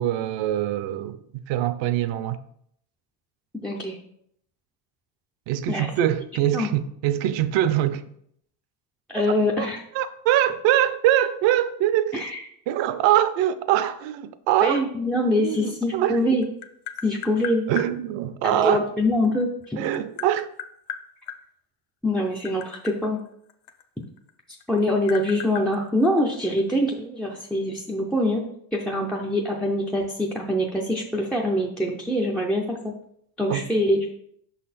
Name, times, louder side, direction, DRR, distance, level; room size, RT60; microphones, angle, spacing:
voice 1, 0.0-2.4 5.5-8.0 9.2-9.3 9.6-9.7 9.9-12.3 12.7-14.9 15.4-16.2 17.7-18.9 19.8-20.5 33.5-33.7, right 12 dB, 60° right, 0.6 m, -23 dB
voice 2, 3.5-4.0 5.7-5.9 6.5-6.7 9.1-9.8 12.1-12.4 14.6-16.4 17.0-17.6 18.4-19.8 22.0-23.2 24.7-28.4 28.7-32.9 33.4-34.1, left 1 dB, ahead, 0.3 m, -24 dB
Tap, 16.0-17.9 19.2-21.4 22.1-24.3 24.6-26.6, left 9 dB, 55° left, 0.6 m, -36 dB
5.8 x 4.0 x 4.2 m
cardioid pair, 120°, 50 cm